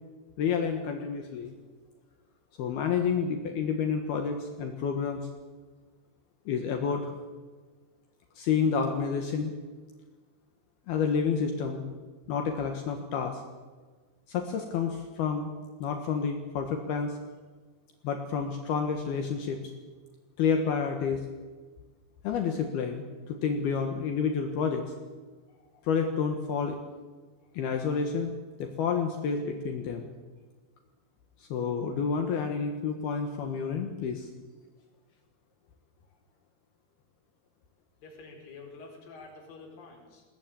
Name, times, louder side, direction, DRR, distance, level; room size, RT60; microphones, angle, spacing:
voice 1, 0.4-1.5 2.6-5.2 6.5-7.1 8.4-9.5 10.9-11.8 12.3-13.4 14.3-15.5 15.8-17.2 18.0-19.6 20.4-21.2 22.2-24.8 25.8-26.8 27.5-28.3 28.6-30.1 31.5-34.3, left 6 dB, 65° left, 4 dB, 3.2 m, -29 dB
voice 2, 38.0-40.2, left 3 dB, 50° left, 0 dB, 6.2 m, -48 dB
21.0 x 18.0 x 9.0 m, 1.4 s
omnidirectional pair, 5.3 m